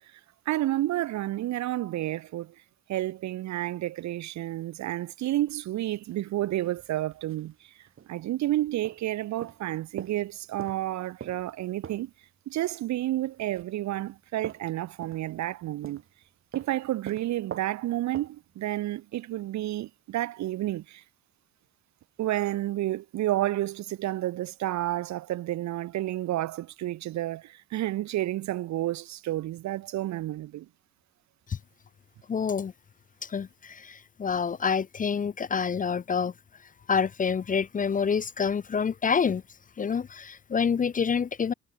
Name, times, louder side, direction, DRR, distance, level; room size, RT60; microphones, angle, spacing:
voice 1, 0.5-2.5 2.9-7.7 8.1-12.1 12.5-16.0 16.5-21.0 22.2-30.7, right 15 dB, 65° right, 0.6 m, -30 dB
sound 1, 5.2-5.6 6.1-6.2 6.5-7.5 7.9-8.1 8.5-9.1 9.4-12.2 13.0-15.6 15.8-16.2 16.5-18.5, right 8 dB, 45° right, 1.1 m, -43 dB
voice 2, 32.3-32.7 33.2-36.3 36.9-39.4 39.8-41.5, left 6 dB, 30° left, 0.5 m, -27 dB
cardioid pair, 90°, 30 cm